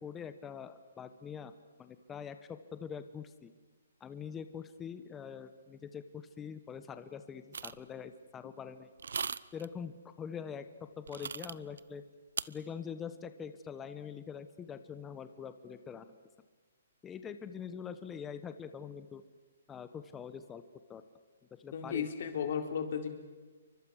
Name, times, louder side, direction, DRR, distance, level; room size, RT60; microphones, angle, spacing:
voice 1, 0.0-1.5 1.8-3.5 4.0-8.9 9.5-10.7 11.0-12.0 12.5-16.2 17.0-19.2 19.7-20.6 20.9-21.0 21.6-22.1, left 7 dB, 10° left, 10 dB, 1.1 m, -44 dB
sound 1, 7.5-7.9 9.0-9.7 11.1-11.8 12.4-12.5, right 6 dB, 80° right, 0.7 m, -38 dB
voice 2, 21.7-23.1, left 7 dB, 55° left, 4 dB, 4.0 m, -34 dB
29.0 x 24.0 x 6.5 m, 1.3 s
hypercardioid pair, 160°, 0 cm